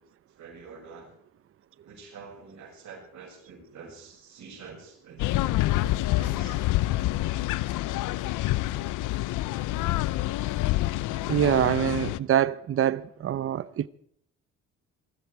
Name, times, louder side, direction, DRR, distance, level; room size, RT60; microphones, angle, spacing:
voice 1, 0.4-1.1 1.8-6.6, right 5 dB, 70° right, 6.6 m, -47 dB
sound 1, 5.2-12.2, left 16 dB, 85° left, 0.6 m, -27 dB
voice 2, 11.3-13.9, right 10 dB, 45° right, 0.7 m, -25 dB
19.5 x 13.5 x 4.7 m
cardioid pair, 90°, 30 cm